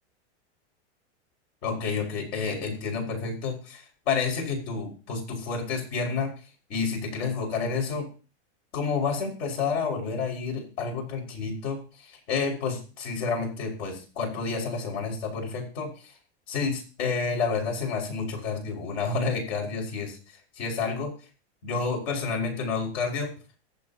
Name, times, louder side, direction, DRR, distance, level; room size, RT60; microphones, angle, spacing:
voice 1, 1.6-6.3 6.7-8.1 8.7-16.1 16.5-20.2 20.6-21.1 21.6-23.3, left 5 dB, 60° left, 2 dB, 5.7 m, -29 dB
23.5 x 7.9 x 2.9 m, 0.36 s
supercardioid pair, 135°, 34 cm